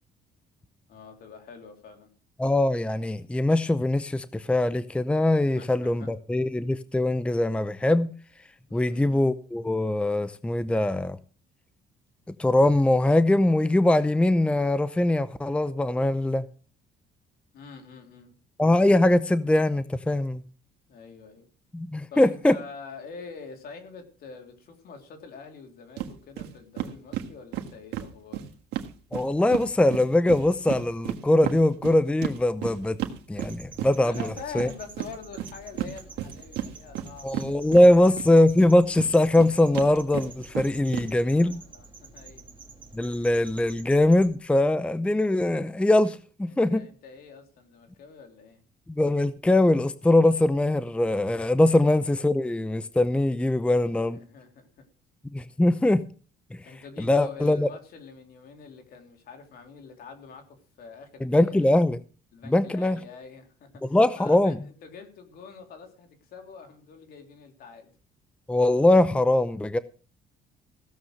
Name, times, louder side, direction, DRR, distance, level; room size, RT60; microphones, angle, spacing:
voice 1, 0.9-2.1 5.5-6.1 8.7-9.4 17.5-18.3 20.9-21.5 22.1-28.5 34.0-38.1 41.2-42.4 46.5-48.6 51.6-51.7 54.1-54.9 56.6-61.7 62.3-67.9, left 5 dB, 65° left, 3.3 m, -45 dB
voice 2, 2.4-8.1 8.7-11.2 12.4-16.4 18.6-20.4 21.7-22.6 29.1-33.0 33.3-34.7 37.2-41.6 42.9-46.8 48.9-54.2 55.3-56.0 56.5-56.6 57.0-57.7 61.2-62.0 62.5-63.0 63.8-64.6 68.5-69.8, left 1 dB, 5° left, 0.6 m, -22 dB
sound 1, 26.0-26.1 26.4-26.5 26.8-29.7 29.9-38.3 38.6-41.1, right 11 dB, 85° right, 1.6 m, -33 dB
sound 2, 33.3-44.3, right 3 dB, 30° right, 1.8 m, -48 dB
16.0 x 7.1 x 6.4 m
cardioid pair, 110°, 17 cm